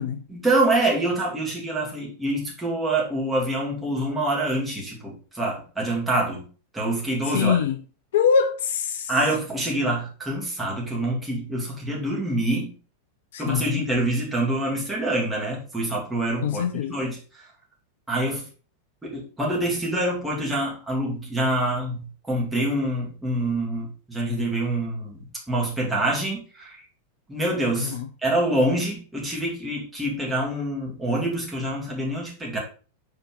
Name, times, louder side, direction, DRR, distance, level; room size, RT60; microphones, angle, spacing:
voice 1, 0.3-6.5 6.7-7.6 9.1-12.7 13.4-16.6 16.9-17.4 18.1-18.5 19.0-26.8 27.3-28.0 28.2-32.6, right 1 dB, 5° right, 2.4 m, -26 dB
voice 2, 7.3-7.8 8.1-9.1 13.3-13.8 16.4-17.0 27.8-28.1, left 7 dB, 60° left, 0.5 m, -24 dB
5.7 x 4.3 x 4.6 m
figure-of-eight pair, 90°, 0 cm